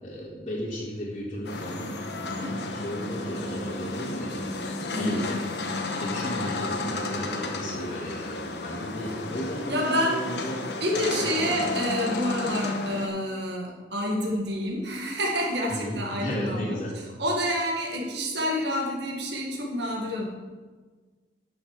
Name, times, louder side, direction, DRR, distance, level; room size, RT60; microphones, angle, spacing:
voice 1, 0.0-1.9 2.2-4.4 4.9-5.3 6.0-10.6 10.9-11.1 11.4-11.6 15.7-17.0, equal, 35° left, -9 dB, 1.9 m, -34 dB
sound 1, 1.4-13.1, left 2 dB, 75° left, 1.1 m, -32 dB
voice 2, 4.9-5.4 9.7-10.3 10.8-16.8 17.2-20.2, equal, 80° right, -1 dB, 1.9 m, -28 dB
12.5 x 6.4 x 4.8 m, 1.4 s
head